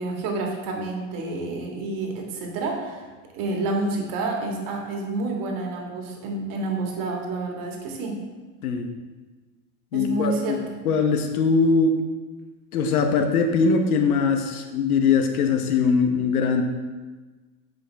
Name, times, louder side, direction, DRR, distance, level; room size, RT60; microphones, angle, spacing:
voice 1, 0.0-3.1 3.3-8.1 9.9-10.9, right 2 dB, 50° right, 1 dB, 1.9 m, -29 dB
voice 2, 9.9-10.6 10.8-12.0 12.7-16.6, left 5 dB, 85° left, 6 dB, 1.0 m, -21 dB
8.5 x 5.3 x 3.4 m, 1.3 s
hypercardioid pair, 100°, 43 cm